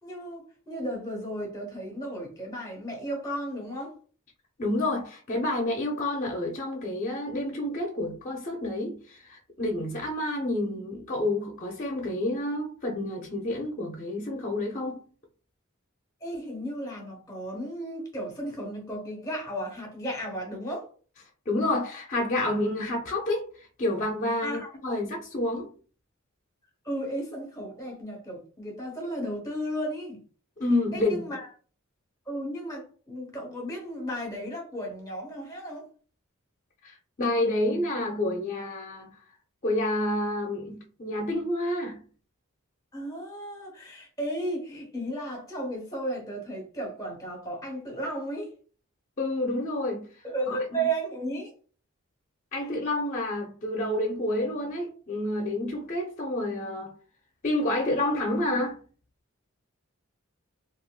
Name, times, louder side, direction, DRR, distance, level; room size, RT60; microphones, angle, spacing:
voice 1, 0.0-3.9 16.2-20.9 24.4-25.0 26.8-30.2 30.9-31.5 32.3-35.9 42.9-48.5 50.2-51.5, right 1 dB, 15° left, 1.0 m, -34 dB
voice 2, 4.6-15.1 21.5-25.7 30.6-31.2 36.8-39.1 39.6-42.0 49.2-50.1 50.5-50.8 52.5-56.9 57.4-58.8, left 1 dB, 35° left, 0.5 m, -29 dB
3.4 x 2.3 x 2.3 m
head